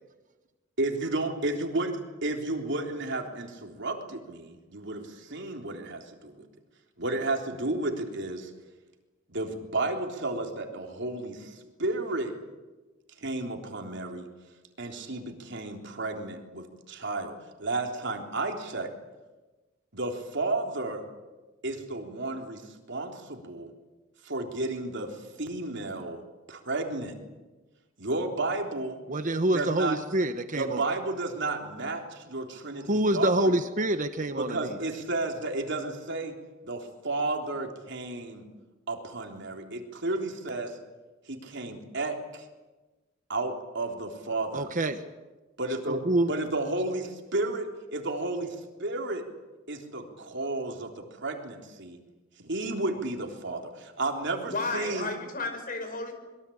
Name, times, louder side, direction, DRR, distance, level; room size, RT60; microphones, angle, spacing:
voice 1, 0.8-6.4 7.0-8.5 9.3-12.3 13.2-14.3 14.8-18.9 19.9-21.0 21.6-23.7 24.2-26.2 26.5-27.2 28.0-29.0 29.5-30.0 30.6-33.5 34.4-36.3 36.6-38.4 38.9-40.8 41.3-42.5 43.3-44.7 45.6-46.0 46.3-49.3 49.7-52.0 52.4-55.1, right 2 dB, 60° right, 3 dB, 3.7 m, -32 dB
voice 2, 29.1-30.8 32.9-34.6 44.5-45.0 45.9-46.3, right 1 dB, 40° right, 8 dB, 1.1 m, -26 dB
voice 3, 54.3-56.1, left 3 dB, 45° left, 7 dB, 5.4 m, -33 dB
26.0 x 22.5 x 8.7 m, 1.2 s
head